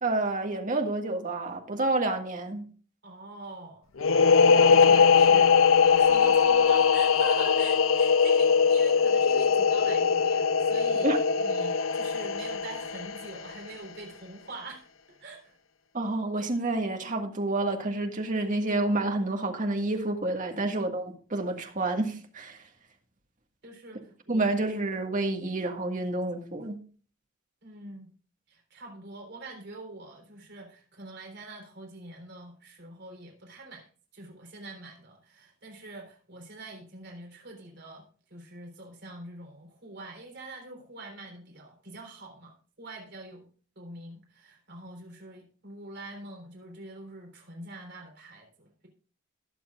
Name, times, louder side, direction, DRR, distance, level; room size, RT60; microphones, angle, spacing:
voice 1, 0.0-2.6 11.0-11.2 15.9-22.6 24.3-26.8, right 2 dB, 40° right, 1.7 m, -29 dB
voice 2, 3.0-3.9 4.5-15.6 20.5-20.8 23.6-24.5 27.6-28.1 28.5-33.8 34.1-43.4 43.8-48.9, right 2 dB, 55° right, 3.8 m, -44 dB
sound 1, 4.0-13.5, left 6 dB, 90° left, 0.6 m, -21 dB
21.0 x 7.2 x 2.4 m
head